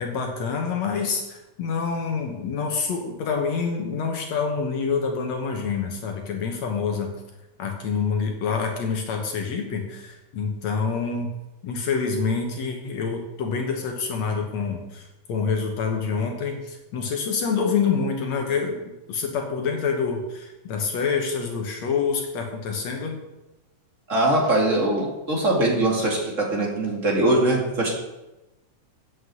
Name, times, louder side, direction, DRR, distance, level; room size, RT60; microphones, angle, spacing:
voice 1, 0.0-7.1 7.6-11.3 11.6-23.2, left 5 dB, 65° left, 2 dB, 2.3 m, -27 dB
voice 2, 24.1-27.9, right 2 dB, 25° right, -2 dB, 2.3 m, -22 dB
8.8 x 7.6 x 7.8 m, 1.0 s
omnidirectional pair, 3.6 m